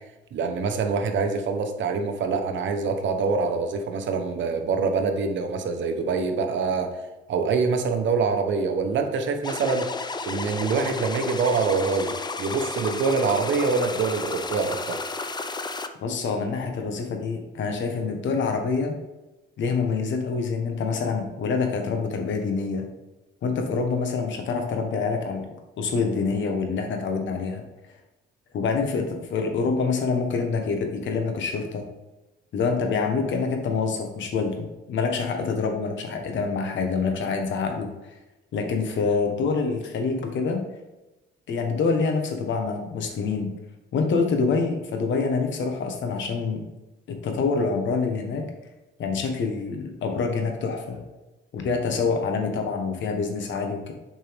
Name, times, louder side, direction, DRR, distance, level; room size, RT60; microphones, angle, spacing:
voice 1, 0.3-6.9 7.3-9.9 10.2-15.0, right 4 dB, 70° right, 5 dB, 1.1 m, -25 dB
sound 1, 9.4-15.9, left 3 dB, 20° left, 0.5 m, -32 dB
voice 2, 16.0-19.0 19.6-22.9 23.4-25.5 25.8-27.6 28.5-31.8 32.5-37.9 38.5-40.6 41.5-43.5 43.9-46.6 47.1-48.4 49.0-51.0 51.5-53.9, left 4 dB, 70° left, 4 dB, 1.4 m, -26 dB
7.6 x 5.4 x 3.5 m, 1.0 s
cardioid pair, 90°, 20 cm